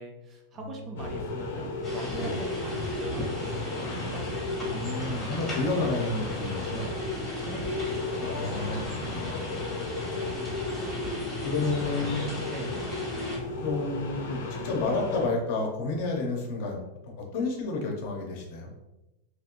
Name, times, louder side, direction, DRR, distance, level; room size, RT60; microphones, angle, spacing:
voice 1, 0.0-4.3 5.8-5.9 7.4-7.9 12.4-12.7, right 2 dB, 20° right, 1 dB, 0.4 m, -41 dB
voice 2, 0.6-1.1 2.2-2.4 4.7-6.9 8.2-9.5 11.4-12.3 13.6-18.8, left 3 dB, 50° left, 1 dB, 0.7 m, -31 dB
sound 1, 1.0-15.3, left 2 dB, 85° left, 0.7 m, -34 dB
sound 2, 1.8-13.4, left 1 dB, 10° left, 1.3 m, -38 dB
3.0 x 3.0 x 2.5 m, 0.99 s
supercardioid pair, 165°, 0 cm